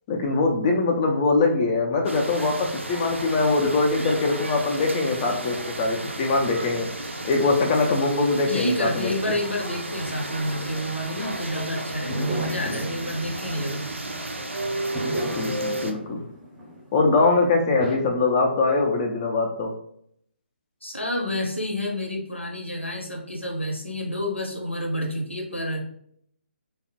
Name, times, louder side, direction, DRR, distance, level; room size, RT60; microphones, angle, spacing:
voice 1, 0.1-6.9 7.2-9.1 12.7-12.8 15.3-16.2 16.9-19.7, left 3 dB, 25° left, 1 dB, 0.3 m, -22 dB
sound 1, 2.0-15.9, right 2 dB, 80° right, 0.5 m, -33 dB
voice 2, 8.5-13.9 20.8-25.8, left 1 dB, 90° left, 1 dB, 0.8 m, -29 dB
sound 2, 12.1-14.3 14.9-17.2 17.8-18.0, right 1 dB, 10° right, 0.7 m, -35 dB
3.4 x 2.0 x 2.8 m, 0.68 s
figure-of-eight pair, 140°, 6 cm